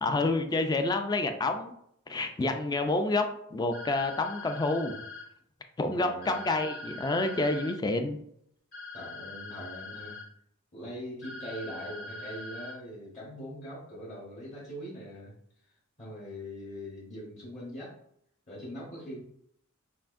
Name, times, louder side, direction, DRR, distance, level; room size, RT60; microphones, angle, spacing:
voice 1, 0.0-1.7 2.1-4.9 5.8-8.2, left 2 dB, 20° left, 6 dB, 0.3 m, -28 dB
sound 1, 3.7-5.2 6.2-7.7 8.7-10.2 11.2-12.7, left 2 dB, 85° left, 1.6 m, -42 dB
voice 2, 5.9-6.4 8.9-10.2 10.7-15.3 16.0-17.9 18.5-19.2, equal, 35° left, -7 dB, 1.2 m, -42 dB
5.7 x 2.6 x 2.5 m, 0.71 s
head